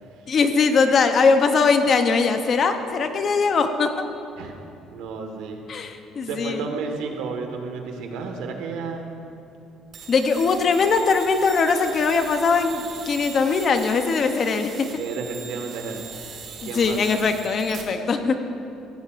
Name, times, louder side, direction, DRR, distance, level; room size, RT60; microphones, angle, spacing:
voice 1, 0.3-3.9 5.7-6.6 10.1-14.9 16.6-18.4, left 4 dB, 35° left, 7 dB, 0.7 m, -21 dB
voice 2, 4.9-5.6 6.2-9.2 14.9-16.1 16.6-17.0, right 4 dB, 85° right, 3 dB, 1.5 m, -32 dB
sound 1, 9.9-17.8, right 6 dB, 45° right, 1.5 m, -40 dB
16.0 x 15.0 x 2.5 m, 2.7 s
cardioid pair, 170°, 0 cm